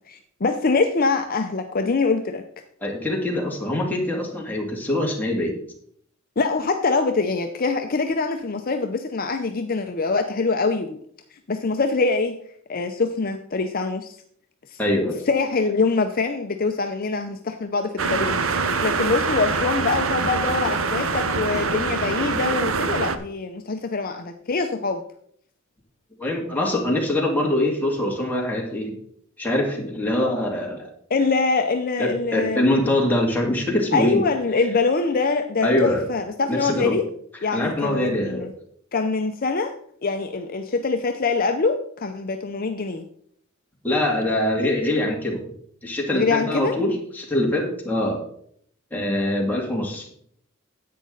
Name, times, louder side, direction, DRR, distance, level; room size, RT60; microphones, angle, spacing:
voice 1, 0.0-2.4 6.4-11.0 11.5-12.4 12.7-14.1 14.7-14.8 15.3-25.0 31.1-32.7 33.9-37.0 37.4-38.5 38.9-39.7 40.0-43.0 46.1-46.8, left 4 dB, 45° left, 6 dB, 0.6 m, -24 dB
voice 2, 2.8-5.6 14.8-15.2 26.2-28.9 29.4-30.9 32.0-34.2 35.6-36.0 36.5-37.0 37.5-38.5 43.8-45.4 45.8-48.3 48.9-50.1, left 1 dB, 10° left, -1 dB, 2.3 m, -23 dB
sound 1, 18.0-23.2, right 4 dB, 75° right, 0.8 m, -24 dB
10.5 x 8.5 x 3.9 m, 0.64 s
head